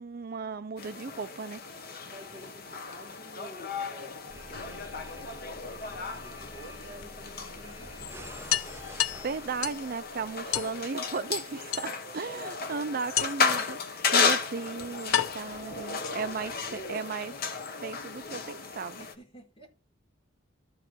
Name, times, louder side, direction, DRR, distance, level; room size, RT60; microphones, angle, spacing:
voice 1, 0.0-1.6 9.2-17.3 17.8-19.1, right 4 dB, 45° right, 0.5 m, -36 dB
sound 1, 0.8-19.1, left 5 dB, 45° left, 1.3 m, -34 dB
voice 2, 2.0-8.5 12.3-13.1 15.8-16.9 19.0-19.7, right 1 dB, 25° left, 4.2 m, -51 dB
sound 2, 4.3-11.1, right 1 dB, 10° right, 0.8 m, -49 dB
sound 3, 4.5-5.5 7.0-7.1 7.5-7.6 7.9-8.0 8.5-9.9 10.5-10.8 11.7-12.3 13.2-13.6 14.4-14.5 15.1-16.5, left 11 dB, 85° left, 0.8 m, -32 dB
13.0 x 4.7 x 4.6 m
head